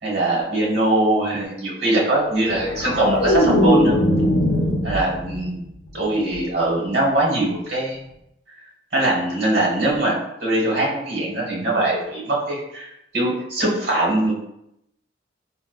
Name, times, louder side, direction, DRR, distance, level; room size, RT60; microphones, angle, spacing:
voice 1, 0.0-4.0 4.8-5.6 5.9-8.0 8.9-14.3, right 1 dB, 60° right, -3 dB, 1.2 m, -22 dB
sound 1, 2.4-5.6 6.0-6.3, left 1 dB, 80° left, 0.5 m, -20 dB
4.1 x 2.1 x 2.3 m, 0.82 s
head